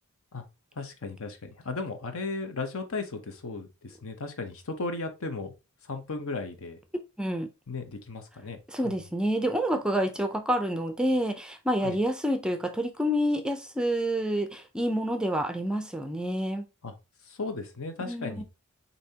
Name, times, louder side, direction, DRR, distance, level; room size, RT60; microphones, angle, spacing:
voice 1, 0.7-5.5 5.8-6.8 7.7-8.6 8.8-9.0 11.8-12.0 16.8-16.9 17.2-18.4, left 3 dB, 65° left, 0.9 m, -35 dB
voice 2, 7.2-7.5 8.7-16.6 18.1-18.4, equal, 5° right, 0.4 m, -28 dB
6.9 x 2.7 x 2.8 m
head